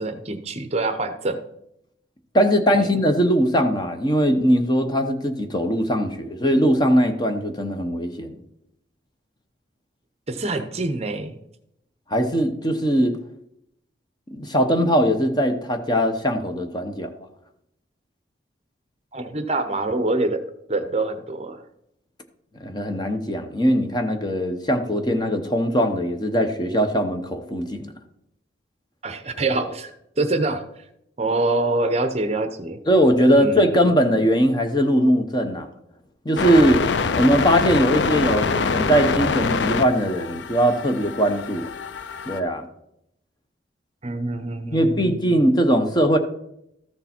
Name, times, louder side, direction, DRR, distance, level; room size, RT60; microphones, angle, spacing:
voice 1, 0.0-1.4 2.7-2.9 10.3-11.4 19.1-21.6 29.0-29.9 30.2-30.6 31.2-32.8 33.3-33.6 44.0-45.3, right 2 dB, 35° right, 9 dB, 0.7 m, -25 dB
voice 2, 2.3-8.4 12.1-13.2 14.3-17.1 22.6-27.9 32.9-35.7 36.2-36.9 37.2-41.7 42.3-42.7 44.7-46.2, equal, 20° left, 6 dB, 0.9 m, -20 dB
sound 1, 36.4-42.4, left 5 dB, 70° left, 0.5 m, -25 dB
13.5 x 6.7 x 4.4 m, 0.78 s
head